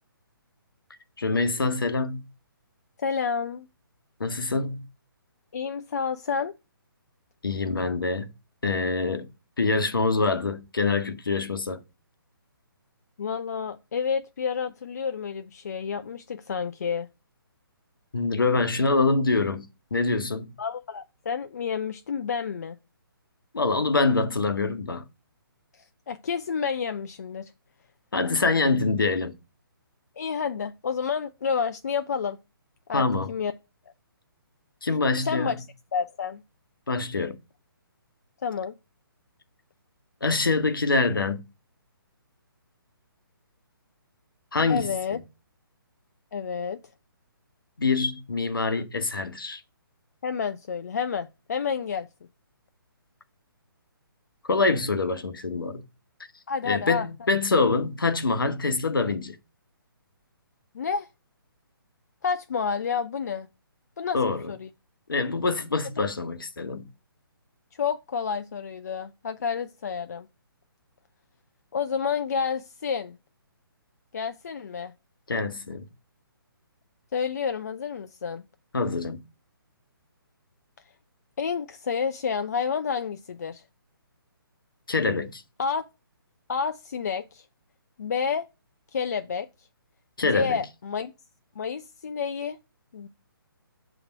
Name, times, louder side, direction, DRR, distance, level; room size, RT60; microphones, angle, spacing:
voice 1, 1.2-2.3 4.2-4.9 7.4-8.3 8.6-9.3 9.6-11.8 18.1-20.5 23.5-25.0 28.1-29.4 32.9-33.3 34.8-35.5 36.9-37.4 40.2-41.4 44.5-45.2 47.8-49.6 54.4-55.8 56.6-59.4 64.1-64.5 65.1-66.9 75.3-75.9 78.7-79.2 84.9-85.4 90.2-90.6, left 3 dB, 65° left, 1.1 m, -25 dB
voice 2, 3.0-3.7 5.5-6.5 13.2-17.1 20.6-22.8 25.7-27.5 30.2-32.4 32.9-33.5 35.2-35.7 35.9-36.4 38.4-38.7 44.7-45.2 46.3-46.8 50.2-52.1 56.5-57.1 60.7-61.1 62.2-63.5 64.0-64.7 67.7-70.3 71.7-73.2 74.1-74.9 77.1-78.4 81.4-83.6 85.6-85.8 86.5-87.4 88.0-88.5 88.9-89.5 90.2-91.1 91.6-92.6 92.9-93.1, left 6 dB, 45° left, 0.4 m, -29 dB
7.0 x 3.4 x 5.2 m
figure-of-eight pair, 135°, 12 cm